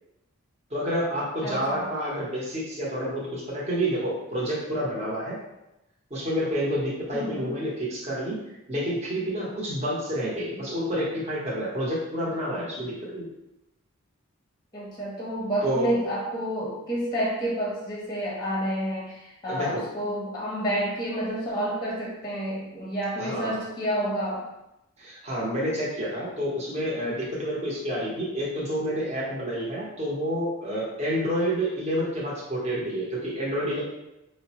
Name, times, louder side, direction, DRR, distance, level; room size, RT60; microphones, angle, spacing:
voice 1, 0.7-5.4 6.1-8.4 8.7-13.3 15.6-15.9 19.5-19.8 23.2-23.6 25.0-33.8, equal, 30° right, -6 dB, 0.9 m, -29 dB
voice 2, 1.4-1.9 7.1-7.6 14.7-24.4, right 1 dB, 20° left, -5 dB, 0.7 m, -29 dB
4.9 x 2.1 x 2.8 m, 0.91 s
head